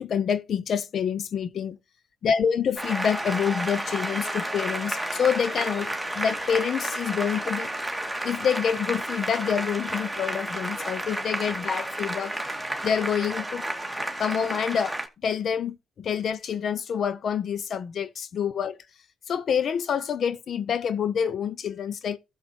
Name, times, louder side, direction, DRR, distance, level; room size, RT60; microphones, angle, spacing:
voice 1, 0.0-1.8 2.2-7.7 8.2-12.3 12.8-13.6 14.2-18.8 19.3-22.2, left 7 dB, 60° left, 0.9 m, -27 dB
Applause, 2.8-15.1, right 1 dB, ahead, 2.3 m, -31 dB
14.5 x 7.4 x 3.0 m
cardioid pair, 90°, 0 cm